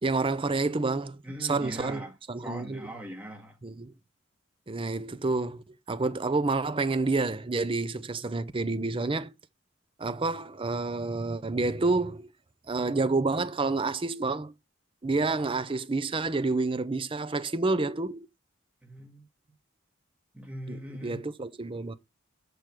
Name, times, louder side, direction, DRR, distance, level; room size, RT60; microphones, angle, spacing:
voice 1, 0.0-2.0 2.3-2.8 3.6-3.9 4.7-9.3 10.0-12.3 12.7-14.5 15.0-18.3 20.7-20.8 21.0-21.9, right 3 dB, 25° right, 0.6 m, -29 dB
voice 2, 1.2-3.6 18.8-19.3 20.3-21.2, equal, 5° right, 1.8 m, -40 dB
6.6 x 4.7 x 5.9 m
head